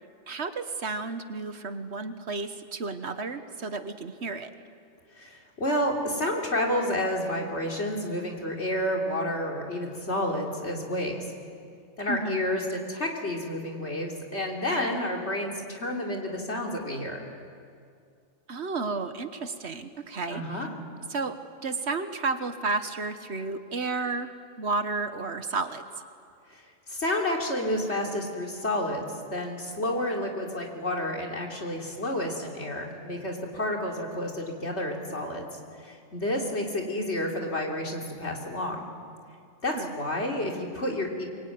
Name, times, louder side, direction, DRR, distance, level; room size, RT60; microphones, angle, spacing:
voice 1, 0.3-4.5 12.1-12.4 18.5-20.7 21.1-21.4 21.6-24.3 24.6-25.8 39.7-39.9, right 3 dB, 60° right, 9 dB, 1.5 m, -32 dB
voice 2, 5.2-11.2 12.0-17.2 20.3-20.7 26.5-26.6 26.9-35.5 35.8-38.9 39.6-41.2, left 1 dB, 60° left, 0 dB, 3.7 m, -30 dB
24.5 x 23.0 x 9.4 m, 2.3 s
omnidirectional pair, 1.3 m